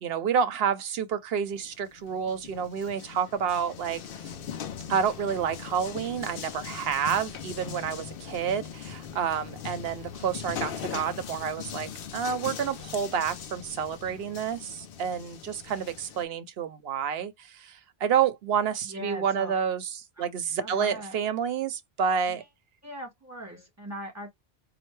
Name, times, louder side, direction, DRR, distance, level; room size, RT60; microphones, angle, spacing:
voice 1, 0.0-4.3 4.9-22.4, right 7 dB, 75° right, 0.8 m, -29 dB
sound 1, 1.5-16.2, left 8 dB, 65° left, 0.7 m, -40 dB
voice 2, 18.9-19.5 20.2-20.3 20.6-21.2 22.3-22.4 22.8-24.3, equal, 15° right, 1.8 m, -40 dB
4.3 x 2.5 x 3.1 m
omnidirectional pair, 1.1 m